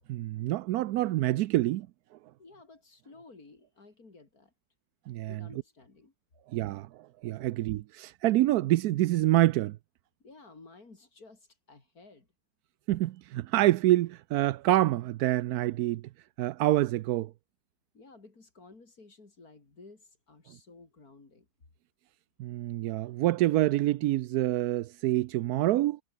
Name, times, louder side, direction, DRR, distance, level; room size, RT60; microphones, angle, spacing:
voice 1, 0.1-1.9 5.1-5.4 6.5-9.8 12.9-16.1 16.4-17.3 22.4-26.0, right 15 dB, 85° right, 1.1 m, -26 dB
voice 2, 2.4-4.5 5.3-6.1 10.2-12.3 17.9-21.5, left 3 dB, 75° left, 4.3 m, -54 dB
omnidirectional pair, 1.6 m